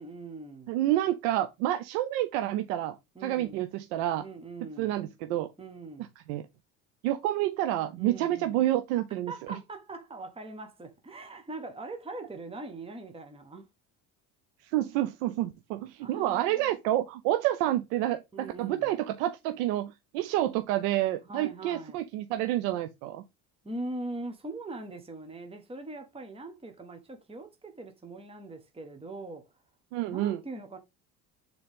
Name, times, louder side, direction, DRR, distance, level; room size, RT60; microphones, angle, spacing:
voice 1, 0.0-0.8 3.1-3.6 4.2-4.9 5.6-6.1 7.9-8.6 9.3-13.7 16.0-16.7 18.3-18.9 21.2-22.0 23.6-29.4 30.1-30.8, right 2 dB, 15° right, 1.1 m, -41 dB
voice 2, 0.7-3.0 3.2-4.2 4.8-5.5 6.3-6.4 7.0-9.3 14.6-23.2 29.9-30.4, right 13 dB, 90° right, 0.6 m, -29 dB
6.8 x 4.0 x 3.5 m
supercardioid pair, 85°, 39 cm